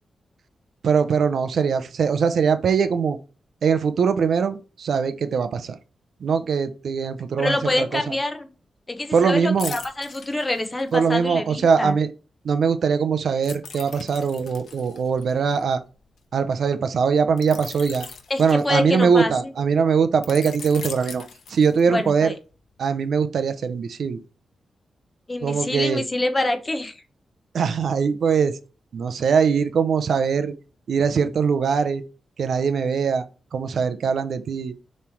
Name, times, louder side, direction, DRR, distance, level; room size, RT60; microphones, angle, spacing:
voice 1, 0.8-3.2 3.6-5.8 6.2-8.0 9.1-9.7 10.9-12.1 12.4-15.8 16.3-18.1 18.4-21.2 21.5-22.3 22.8-24.2 25.4-26.0 27.5-28.5 28.9-30.5 30.9-32.0 32.4-33.2 33.5-34.7, right 6 dB, 70° right, 0.5 m, -21 dB
voice 2, 7.4-8.5 8.9-12.0 18.3-19.3 21.9-22.4 25.3-27.0, left 2 dB, 20° left, 0.8 m, -26 dB
sound 1, 9.6-11.1 13.4-16.2 17.4-19.2 20.2-22.1 22.5-22.7, left 6 dB, 80° left, 0.9 m, -40 dB
7.0 x 3.2 x 4.5 m
wide cardioid pair, 140°, 0 cm